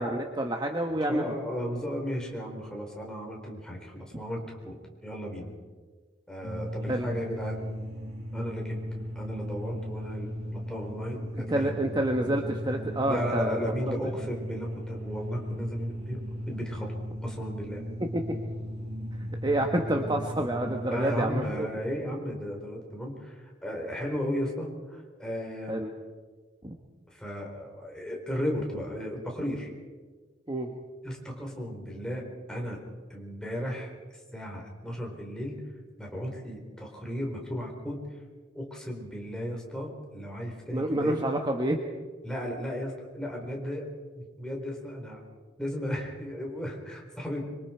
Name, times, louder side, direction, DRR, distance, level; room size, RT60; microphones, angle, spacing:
voice 1, 0.0-1.2 6.9-7.1 11.5-13.6 18.1-18.2 19.4-21.7 25.7-25.9 26.6-26.7 30.5-30.7 40.7-41.8, right 1 dB, 25° right, 2 dB, 1.3 m, -28 dB
voice 2, 0.9-4.8 5.0-5.5 6.3-7.7 8.3-8.8 9.2-11.8 13.0-16.9 17.2-17.8 20.9-25.8 27.1-29.7 31.0-32.8 33.1-33.9 34.3-35.6 36.0-38.0 38.5-41.3 42.2-43.9 44.2-45.2 45.6-47.4, equal, 5° left, -1 dB, 4.1 m, -35 dB
sound 1, 6.4-21.4, equal, 60° right, 2.5 m, -37 dB
25.5 x 24.0 x 4.5 m, 1.4 s
head